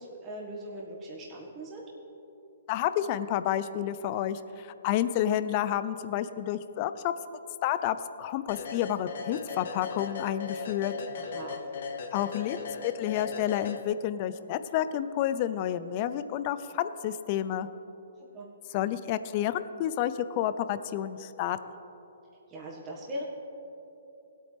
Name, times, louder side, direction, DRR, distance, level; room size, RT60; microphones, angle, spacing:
voice 1, 0.0-1.8 11.2-11.6 18.3-18.5 22.5-23.2, right 1 dB, 25° right, -4 dB, 1.6 m, -40 dB
voice 2, 2.7-10.9 12.1-17.7 18.7-21.6, left 11 dB, 35° left, 13 dB, 0.5 m, -30 dB
sound 1, 8.5-14.3, left 5 dB, 60° left, 1.1 m, -38 dB
18.5 x 8.5 x 3.4 m, 3.0 s
hypercardioid pair, 140°, 0 cm